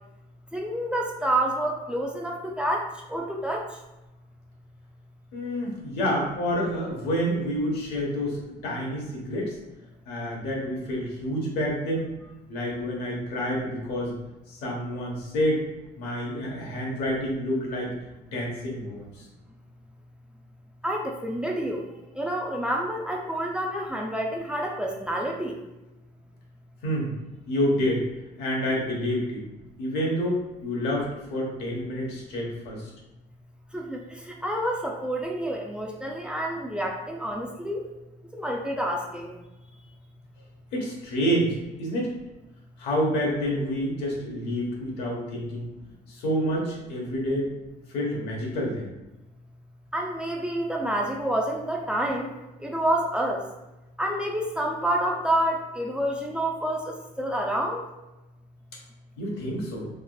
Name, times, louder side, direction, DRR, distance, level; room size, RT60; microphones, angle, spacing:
voice 1, 0.5-3.6 20.8-21.8 22.2-25.5 33.7-34.0 34.3-37.8 38.3-39.3 49.9-52.3 52.6-53.4 54.0-57.8, right 1 dB, 5° right, -1 dB, 0.4 m, -28 dB
voice 2, 5.3-9.6 10.1-12.1 12.5-14.1 14.5-15.6 16.0-17.9 18.3-19.2 26.8-27.1 27.5-28.1 28.4-29.4 29.8-32.9 40.7-42.1 42.8-45.7 46.1-47.5 47.9-48.8 59.2-59.9, equal, 90° left, -2 dB, 1.0 m, -28 dB
3.6 x 2.4 x 2.3 m, 1.0 s
cardioid pair, 110°, 17 cm